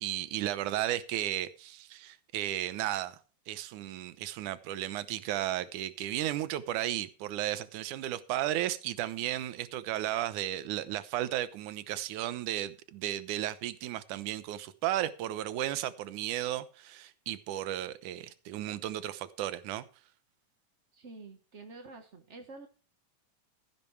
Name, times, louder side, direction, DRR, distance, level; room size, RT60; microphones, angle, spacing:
voice 1, 0.0-3.2 3.5-19.8, right 13 dB, 80° right, 2.4 m, -34 dB
voice 2, 20.9-22.7, right 3 dB, 60° right, 0.7 m, -48 dB
15.5 x 11.0 x 3.3 m
omnidirectional pair, 3.5 m